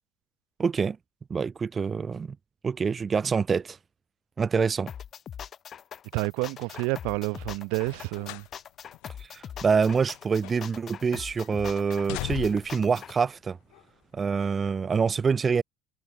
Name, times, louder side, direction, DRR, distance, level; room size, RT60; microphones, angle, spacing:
voice 1, 0.6-1.0 1.3-2.4 2.6-3.8 4.4-4.9 9.2-13.6 14.1-15.6, right 5 dB, 20° right, 0.4 m, -26 dB
sound 1, 4.9-13.1, left 9 dB, 30° left, 1.8 m, -42 dB
voice 2, 6.1-8.4, right 33 dB, 75° right, 1.2 m, -29 dB
sound 2, 7.8-8.5 8.9-9.1 9.8-10.8 11.1-11.5 11.9-12.8 13.7-13.8, left 30 dB, 75° left, 0.5 m, -38 dB
cardioid pair, 160°, 0 cm